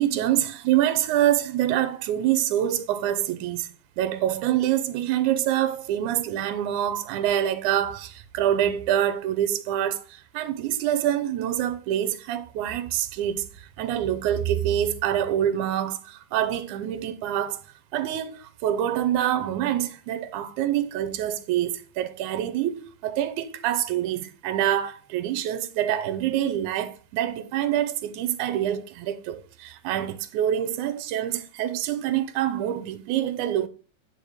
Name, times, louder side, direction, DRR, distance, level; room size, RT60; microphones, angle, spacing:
voice 1, 0.0-17.6 17.9-33.7, right 11 dB, 85° right, 2.2 m, -26 dB
9.5 x 4.6 x 4.9 m
omnidirectional pair, 3.4 m